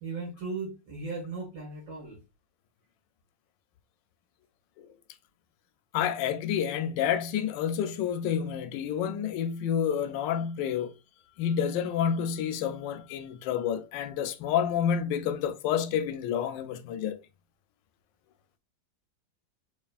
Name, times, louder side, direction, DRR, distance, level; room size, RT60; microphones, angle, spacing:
voice 1, 0.0-2.2, right 4 dB, 80° right, 2.4 m, -37 dB
voice 2, 5.9-10.9 11.4-17.2, left 8 dB, 90° left, 1.3 m, -29 dB
4.4 x 3.3 x 2.3 m
omnidirectional pair, 1.9 m